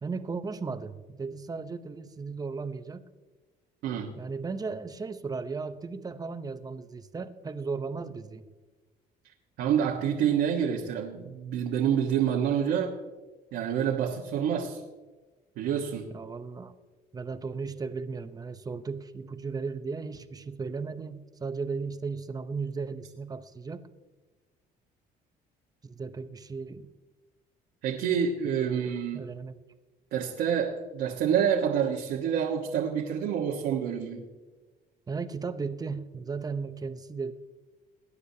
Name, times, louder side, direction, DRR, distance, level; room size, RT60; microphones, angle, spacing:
voice 1, 0.0-3.0 4.2-8.4 16.1-16.7 17.1-23.8 25.8-26.9 28.6-29.5 35.1-37.3, right 4 dB, 20° right, 10 dB, 0.8 m, -36 dB
voice 2, 9.6-13.0 13.5-14.8 15.6-16.1 27.8-29.2 30.1-34.2, right 8 dB, 80° right, -1 dB, 1.4 m, -27 dB
20.5 x 9.8 x 2.8 m, 1.3 s
cardioid pair, 110°, 17 cm